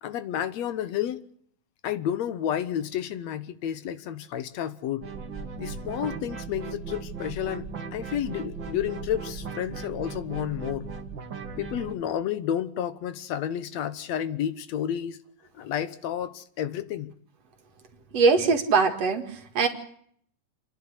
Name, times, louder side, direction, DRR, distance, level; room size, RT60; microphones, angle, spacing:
voice 1, 0.0-1.2 1.8-5.1 5.6-10.9 11.6-15.2 15.5-17.1, left 10 dB, 70° left, 2.1 m, -31 dB
sound 1, 5.0-11.9, right 5 dB, 45° right, 2.4 m, -37 dB
voice 2, 18.1-19.7, right 4 dB, 60° right, 3.0 m, -22 dB
28.5 x 11.0 x 9.9 m
omnidirectional pair, 3.3 m